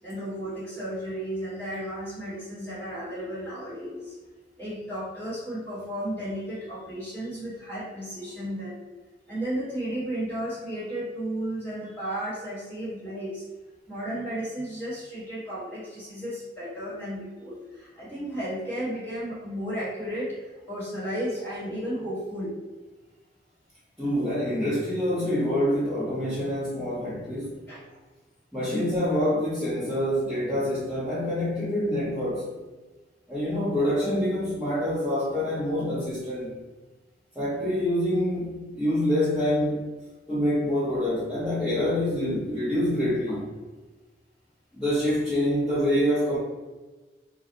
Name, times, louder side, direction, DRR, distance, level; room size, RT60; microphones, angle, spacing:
voice 1, 0.0-4.1 4.6-8.8 9.2-13.4 13.9-22.5 27.7-28.0 43.3-43.4, right 1 dB, 15° left, -10 dB, 1.4 m, -34 dB
voice 2, 24.0-27.6 28.5-32.5 33.3-36.5 37.3-39.8 40.3-43.5 44.7-46.4, left 1 dB, 5° right, -14 dB, 0.8 m, -26 dB
2.4 x 2.3 x 3.8 m, 1.2 s
head